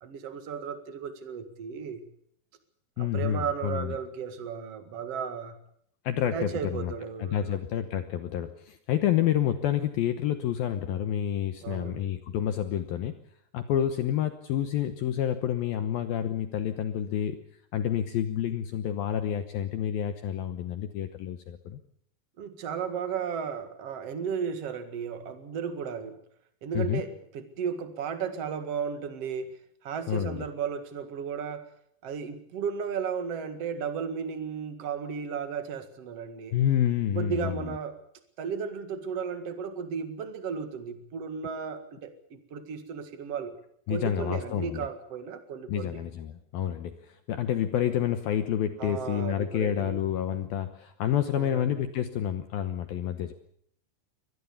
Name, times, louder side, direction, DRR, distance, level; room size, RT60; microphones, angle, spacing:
voice 1, 0.0-2.1 3.0-5.6 6.3-7.6 11.6-12.1 22.4-26.2 26.6-29.6 29.8-31.7 32.0-36.6 37.1-38.0 38.4-43.6 43.9-46.0 48.8-50.0 51.3-51.8, right 6 dB, 55° right, 9 dB, 1.7 m, -34 dB
voice 2, 3.0-4.0 6.0-6.9 7.2-13.1 13.5-17.4 17.7-21.8 26.7-27.0 30.1-30.4 36.5-37.8 43.9-44.9 45.7-53.3, left 10 dB, 85° left, 9 dB, 2.1 m, -29 dB
23.5 x 19.5 x 7.1 m, 0.67 s
omnidirectional pair, 5.8 m